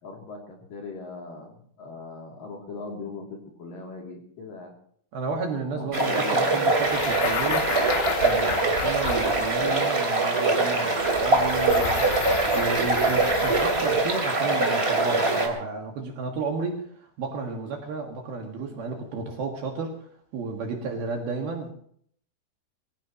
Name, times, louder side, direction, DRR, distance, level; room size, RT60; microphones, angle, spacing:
voice 1, 0.0-4.7 5.7-6.7, left 3 dB, 50° left, 0 dB, 4.0 m, -39 dB
voice 2, 5.1-7.7 8.2-19.9 20.3-21.7, right 4 dB, 60° right, 2 dB, 3.2 m, -32 dB
sound 1, 5.9-15.5, right 2 dB, 20° right, 1.9 m, -23 dB
sound 2, 6.7-9.9 11.0-14.1, left 11 dB, 75° left, 2.9 m, -33 dB
23.5 x 16.5 x 3.0 m, 0.63 s
omnidirectional pair, 5.8 m